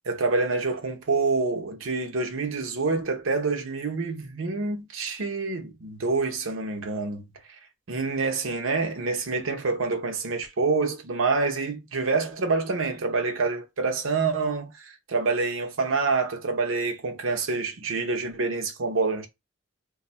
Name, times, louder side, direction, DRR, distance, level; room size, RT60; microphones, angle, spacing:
voice 1, 0.0-7.3 7.9-19.3, right 4 dB, 85° right, 0.7 m, -27 dB
2.6 x 2.3 x 4.1 m
head